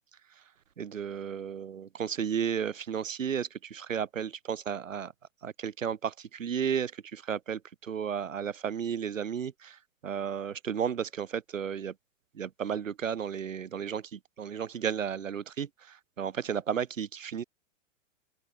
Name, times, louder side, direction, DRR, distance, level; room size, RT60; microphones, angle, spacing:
voice 1, 0.8-5.1 5.4-11.9 12.3-17.4, right 8 dB, 85° right, 3.3 m, -33 dB
open air
hypercardioid pair, 115°, 38 cm